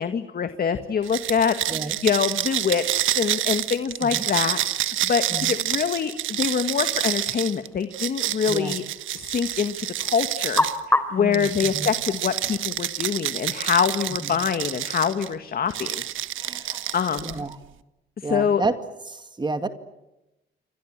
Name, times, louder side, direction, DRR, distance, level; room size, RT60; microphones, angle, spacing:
voice 1, 0.0-8.8 9.1-16.1 16.6-17.4 18.2-18.6, left 7 dB, 50° left, 9 dB, 1.8 m, -25 dB
sound 1, 1.0-10.8 11.3-15.3 15.7-17.5, right 13 dB, 80° right, 1.4 m, -28 dB
sound 2, 6.5-13.4, left 1 dB, 10° left, 3.4 m, -32 dB
voice 2, 11.2-11.9 14.2-14.3 16.4-17.0 17.2-17.6 18.2-18.7 19.1-19.7, right 3 dB, 20° right, 9 dB, 2.3 m, -30 dB
29.0 x 24.0 x 7.5 m, 0.96 s
cardioid pair, 90°, 20 cm